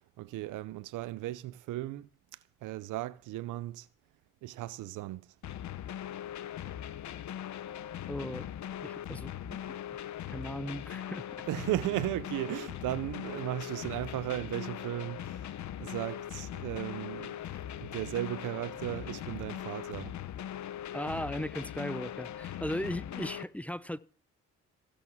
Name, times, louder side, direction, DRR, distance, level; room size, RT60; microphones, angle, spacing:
voice 1, 0.2-2.1 2.6-3.9 4.4-5.3 11.5-20.2, right 15 dB, 90° right, 0.8 m, -36 dB
sound 1, 5.4-23.4, left 10 dB, 65° left, 1.1 m, -40 dB
voice 2, 8.1-8.5 8.7-9.8 10.3-11.4 20.9-24.0, equal, 5° left, 0.9 m, -37 dB
16.0 x 8.6 x 7.3 m
cardioid pair, 90°, 30 cm